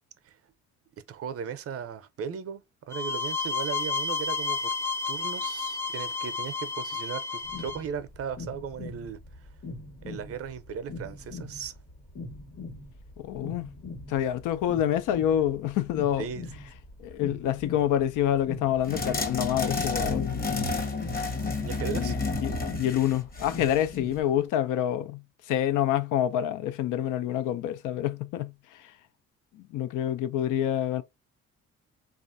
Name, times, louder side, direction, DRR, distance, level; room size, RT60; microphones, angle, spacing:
voice 1, 1.1-4.7 5.1-9.2 10.0-11.7 16.2-16.4 21.4-22.1, right 7 dB, 50° right, 0.6 m, -37 dB
sound 1, 2.9-7.8, left 4 dB, 10° left, 0.4 m, -31 dB
sound 2, 7.4-24.2, left 2 dB, 55° left, 1.4 m, -42 dB
voice 2, 13.2-13.7 14.1-16.3 17.0-20.4 22.0-22.1 22.4-28.9 29.5-31.0, left 11 dB, 85° left, 0.5 m, -27 dB
sound 3, 18.9-23.9, left 3 dB, 30° left, 0.9 m, -30 dB
3.2 x 2.4 x 2.6 m
cardioid pair, 90°, 30 cm